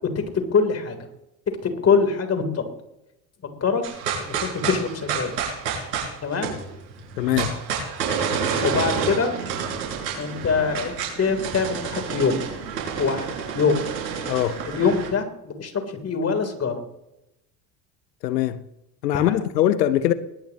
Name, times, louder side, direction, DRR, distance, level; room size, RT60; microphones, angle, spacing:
voice 1, 0.5-1.0 1.6-2.6 3.6-3.8 4.2-5.3 6.2-6.5 8.6-9.3 10.2-10.9 11.2-12.3 13.0-13.8 14.6-16.8 19.1-19.4, left 5 dB, 30° left, 3.4 m, -23 dB
sound 1, 3.8-15.1, right 6 dB, 75° right, 6.5 m, -29 dB
voice 2, 7.2-7.6 14.2-14.6 18.2-18.6 19.0-20.1, left 12 dB, 75° left, 1.0 m, -22 dB
21.0 x 19.5 x 3.0 m
figure-of-eight pair, 70°, 50 cm